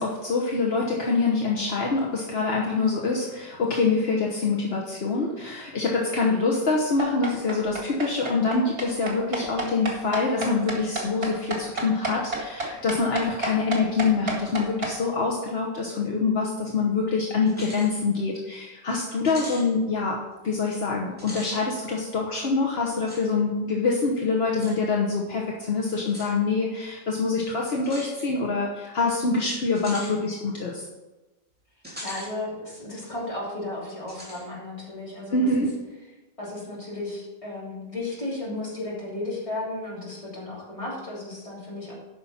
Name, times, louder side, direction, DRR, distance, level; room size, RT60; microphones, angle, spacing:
voice 1, 0.0-20.2 20.4-30.9 35.3-35.7, left 4 dB, 70° left, -2 dB, 1.3 m, -25 dB
sound 1, 7.0-14.9, right 2 dB, 65° right, 2.3 m, -30 dB
sound 2, 17.5-17.9 18.3-18.4 19.2-19.7 21.1-21.5 23.1-23.2 24.6-24.8 26.1-26.3 27.8-28.1 29.7-30.1 31.8-32.3 32.7-32.8 34.1-34.4, equal, 10° right, 2.8 m, -40 dB
voice 2, 32.0-35.7 36.4-41.9, left 2 dB, 30° left, -7 dB, 3.2 m, -34 dB
9.5 x 5.7 x 5.7 m, 1.1 s
omnidirectional pair, 1.1 m